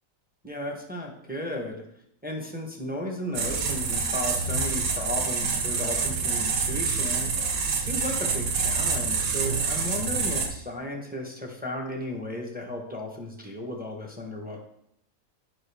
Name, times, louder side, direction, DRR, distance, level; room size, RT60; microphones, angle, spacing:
voice 1, 0.4-1.8 2.2-7.5 7.7-14.6, left 1 dB, 10° right, 1 dB, 0.7 m, -35 dB
sound 1, 3.3-10.5, right 5 dB, 70° right, 1.3 m, -27 dB
8.7 x 5.0 x 3.4 m, 0.74 s
omnidirectional pair, 1.6 m